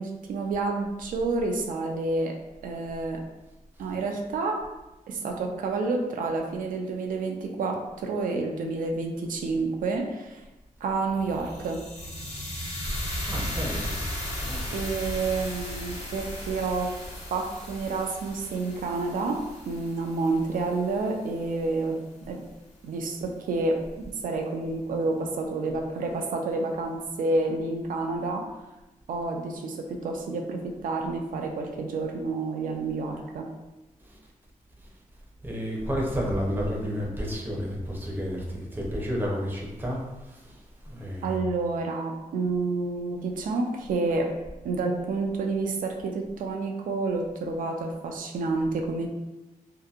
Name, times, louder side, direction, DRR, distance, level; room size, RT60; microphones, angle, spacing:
voice 1, 0.0-2.3 2.6-3.2 3.8-4.6 5.1-10.4 10.8-11.8 14.7-16.9 17.3-22.0 22.3-22.4 22.8-23.8 24.2-28.4 29.1-33.5 41.2-44.3 44.6-49.1, right 3 dB, 85° right, 2 dB, 0.4 m, -29 dB
sound 1, 11.1-21.3, equal, 50° left, 0.7 m, -36 dB
voice 2, 13.3-14.1 14.4-14.7 34.1-34.2 35.4-40.0 40.3-40.6 40.9-41.4, equal, 15° right, -3 dB, 0.5 m, -31 dB
2.7 x 2.5 x 2.4 m, 1.0 s
wide cardioid pair, 155°, 14 cm